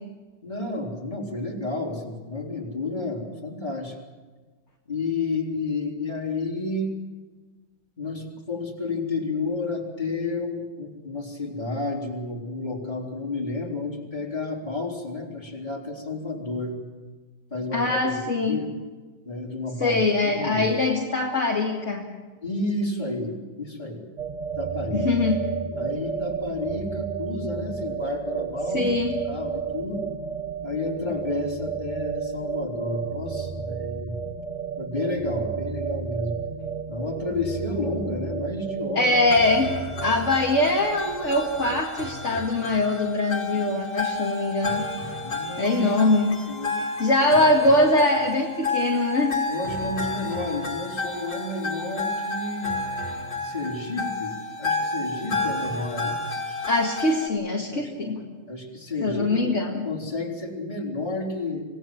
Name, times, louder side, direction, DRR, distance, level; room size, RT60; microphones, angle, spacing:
voice 1, 0.4-4.0 4.9-6.9 8.0-16.8 17.5-18.1 18.4-18.7 19.3-20.8 22.4-24.0 24.6-25.1 25.8-28.9 29.3-30.1 30.6-34.2 34.8-36.4 36.9-39.1 45.2-45.8 46.5-46.8 49.5-52.7 53.4-56.2 57.7-57.9 58.5-59.5 59.8-61.6, left 3 dB, 25° left, -1 dB, 3.8 m, -31 dB
voice 2, 17.7-18.6 19.8-22.0 24.9-25.4 28.7-29.2 39.0-39.7 40.0-44.8 45.6-46.3 47.0-49.3 56.7-58.2 59.0-59.9, left 2 dB, 45° left, -1 dB, 2.5 m, -22 dB
sound 1, 24.2-41.8, right 6 dB, 35° right, 0.7 m, -32 dB
sound 2, 39.3-57.3, left 3 dB, 75° left, 3.3 m, -31 dB
26.5 x 18.0 x 7.6 m, 1.3 s
omnidirectional pair, 1.8 m